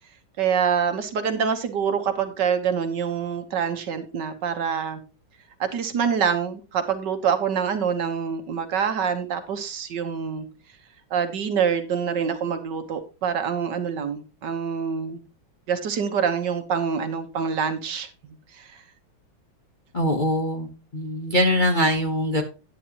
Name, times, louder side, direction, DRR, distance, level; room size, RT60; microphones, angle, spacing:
voice 1, 0.4-5.0 5.6-10.5 11.1-15.2 15.7-18.8, right 7 dB, 60° right, 1.7 m, -26 dB
voice 2, 19.9-22.4, equal, 40° left, 0.7 m, -23 dB
9.9 x 9.8 x 2.9 m
omnidirectional pair, 2.2 m